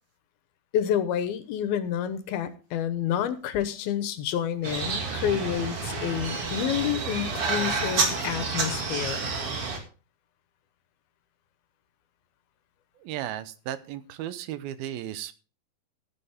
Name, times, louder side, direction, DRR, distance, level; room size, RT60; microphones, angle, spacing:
voice 1, 0.7-9.3, left 10 dB, 85° left, 12 dB, 2.9 m, -29 dB
sound 1, 4.6-9.8, right 4 dB, 45° right, 2.7 m, -29 dB
voice 2, 13.0-15.3, right 12 dB, 80° right, 13 dB, 2.7 m, -35 dB
13.5 x 9.8 x 3.6 m, 0.35 s
omnidirectional pair, 4.3 m